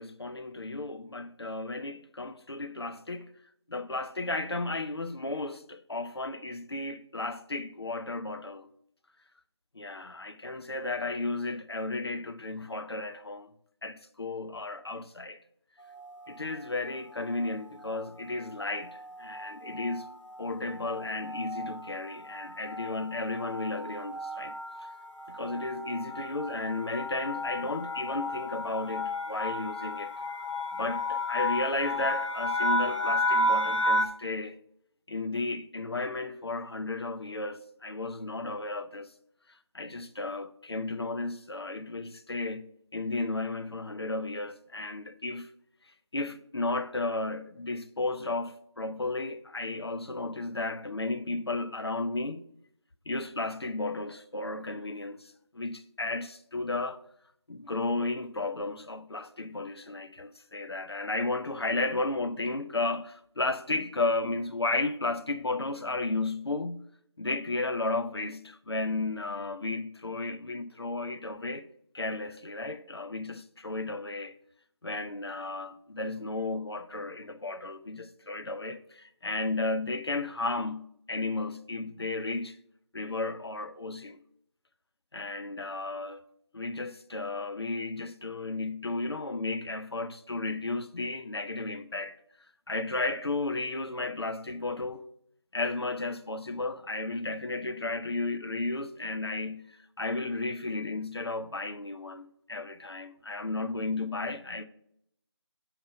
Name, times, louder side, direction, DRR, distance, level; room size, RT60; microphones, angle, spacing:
voice 1, 0.0-3.3 3.7-8.7 9.7-13.5 13.8-15.4 16.3-20.1 20.4-24.5 24.8-24.9 25.3-30.1 30.7-34.6 35.1-39.1 39.5-45.5 46.1-52.4 53.1-57.0 57.5-66.8 67.2-71.7 71.9-74.3 74.8-82.6 82.9-84.2 85.1-86.2 86.5-92.2 92.7-95.1 95.5-104.6, left 2 dB, 55° left, 0.7 m, -34 dB
sound 1, 15.9-16.4 17.1-17.5 17.8-18.0 18.3-34.1, left 1 dB, 85° left, 1.3 m, -33 dB
8.0 x 3.7 x 6.7 m
figure-of-eight pair, 170°, 15 cm